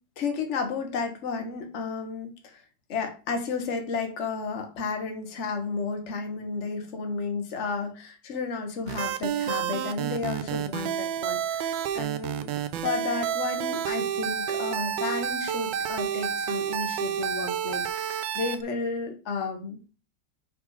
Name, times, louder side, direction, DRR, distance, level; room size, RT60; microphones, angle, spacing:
voice 1, 0.2-2.6 2.9-12.5 12.8-19.8, left 4 dB, 40° left, 4 dB, 1.4 m, -32 dB
sound 1, 8.9-18.6, right 9 dB, 85° right, 1.4 m, -30 dB
5.1 x 4.8 x 4.8 m, 0.35 s
omnidirectional pair, 2.0 m